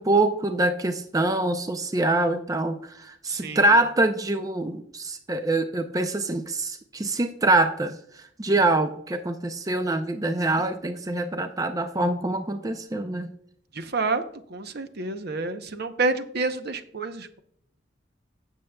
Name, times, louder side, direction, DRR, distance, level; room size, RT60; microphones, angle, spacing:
voice 1, 0.0-13.3, right 2 dB, 20° right, 7 dB, 0.5 m, -25 dB
voice 2, 3.3-3.7 13.7-14.2 14.5-17.4, right 3 dB, 60° right, 9 dB, 0.8 m, -29 dB
16.0 x 7.3 x 2.3 m, 0.67 s
head